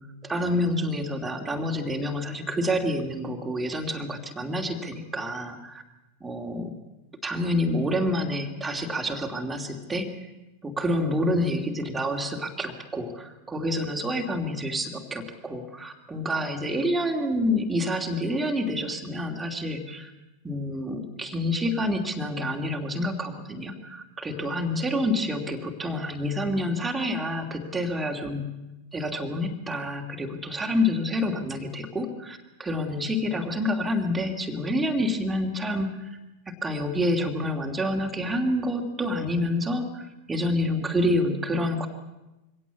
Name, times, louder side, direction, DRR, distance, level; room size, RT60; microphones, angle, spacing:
voice 1, 0.2-5.8 6.2-6.7 7.2-10.1 10.6-20.1 20.4-28.4 28.9-36.1 36.6-41.9, left 1 dB, 10° right, 2 dB, 2.9 m, -28 dB
23.5 x 17.0 x 8.4 m, 1.0 s
figure-of-eight pair, 90°, 0 cm